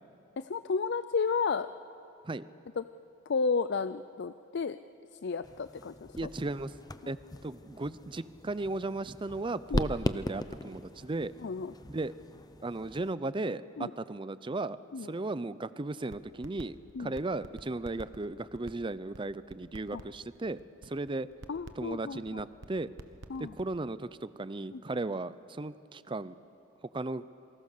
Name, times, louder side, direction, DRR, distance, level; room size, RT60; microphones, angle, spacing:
voice 1, 0.4-1.7 2.8-2.9 3.3-4.8 5.2-6.1 7.0-7.1 9.7-9.8 11.4-11.7 13.8-13.9 14.9-15.1 16.9-17.1 19.9-20.0 21.5-22.5 23.3-23.5 24.7-24.8, left 5 dB, 60° left, 12 dB, 0.5 m, -32 dB
sound 1, 5.4-13.2, left 1 dB, 20° left, 0.7 m, -39 dB
voice 2, 6.2-6.7 7.1-7.2 7.4-11.3 11.9-12.1 12.6-21.3 21.8-22.9 23.4-26.4 26.8-27.2, right 2 dB, 25° right, 16 dB, 0.6 m, -36 dB
sound 2, 16.1-16.6 16.9-23.6, right 2 dB, 65° right, 1.2 m, -47 dB
28.0 x 23.5 x 6.7 m, 2.9 s
head